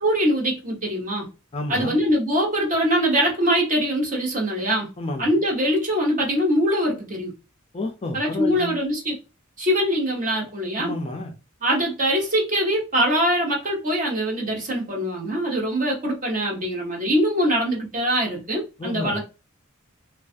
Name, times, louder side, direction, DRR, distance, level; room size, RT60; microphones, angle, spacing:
voice 1, 0.0-1.3 1.7-4.9 5.2-7.3 8.1-9.2 9.6-10.9 11.6-19.2, equal, 40° right, 1.0 m, -23 dB
voice 2, 1.5-2.0 5.0-5.3 7.7-8.7 10.8-11.3 18.8-19.2, left 2 dB, 30° left, 0.4 m, -30 dB
2.4 x 2.3 x 2.4 m
head